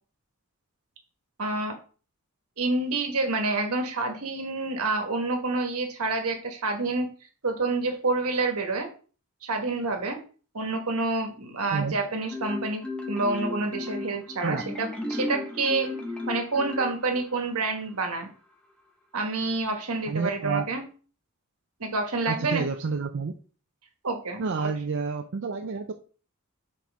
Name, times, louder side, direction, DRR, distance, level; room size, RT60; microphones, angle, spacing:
voice 1, 1.4-1.7 2.6-7.1 7.4-8.9 9.4-10.2 10.5-15.9 16.3-18.3 19.1-20.8 21.8-22.7 24.0-24.7, right 3 dB, 75° right, 4 dB, 1.4 m, -28 dB
Marimba xylophone, 12.3-17.5, left 2 dB, 5° left, 0.9 m, -34 dB
voice 2, 20.1-20.6 22.3-23.3 24.4-25.9, right 4 dB, 55° right, 5 dB, 0.5 m, -29 dB
6.3 x 4.3 x 3.4 m, 0.38 s
head